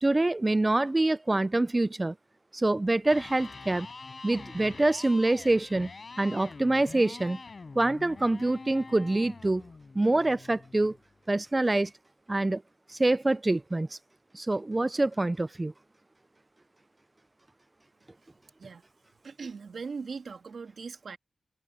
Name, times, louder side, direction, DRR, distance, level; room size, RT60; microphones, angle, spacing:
voice 1, 0.0-2.1 2.5-3.9 4.2-5.9 6.2-7.4 7.8-9.6 9.9-11.0 11.3-11.9 12.3-12.6 13.0-14.0 14.3-15.7, right 2 dB, 20° right, 0.5 m, -25 dB
Electric guitar, 2.9-11.0, left 4 dB, 40° left, 5.2 m, -45 dB
voice 2, 19.2-21.2, right 5 dB, 65° right, 1.9 m, -39 dB
wide cardioid pair, 120°, 0 cm